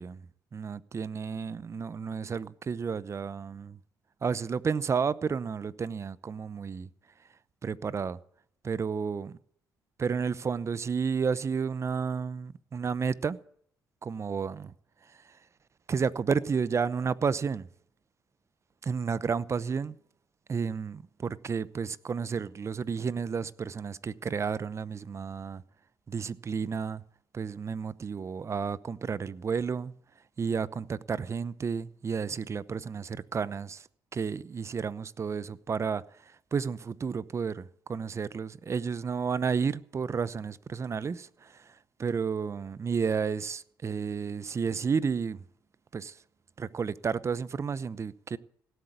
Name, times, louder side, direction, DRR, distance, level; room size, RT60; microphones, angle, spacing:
voice 1, 0.5-3.8 4.2-6.9 7.6-8.2 8.6-9.4 10.0-13.4 14.0-14.7 15.9-17.7 18.8-20.0 20.5-25.6 26.1-27.0 27.3-29.9 30.4-36.0 36.5-41.5 42.0-45.4 45.9-46.1 46.6-48.4, right 6 dB, 40° right, 0.8 m, -31 dB
17.0 x 8.1 x 9.3 m
supercardioid pair, 70°, 7 cm